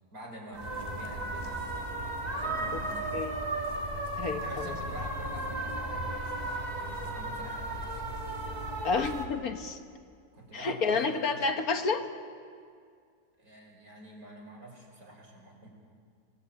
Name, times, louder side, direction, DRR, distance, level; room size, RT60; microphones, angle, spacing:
voice 1, 0.1-1.9 2.3-3.3 4.4-8.2 10.3-11.4 13.4-15.7, right 1 dB, 65° right, -1 dB, 5.9 m, -46 dB
sound 1, 0.5-9.3, right 2 dB, 25° right, 2.8 m, -35 dB
voice 2, 4.2-4.7 8.8-9.8 10.5-12.1, left 4 dB, 65° left, 6 dB, 1.7 m, -30 dB
28.5 x 18.0 x 8.6 m, 2.2 s
omnidirectional pair, 1.7 m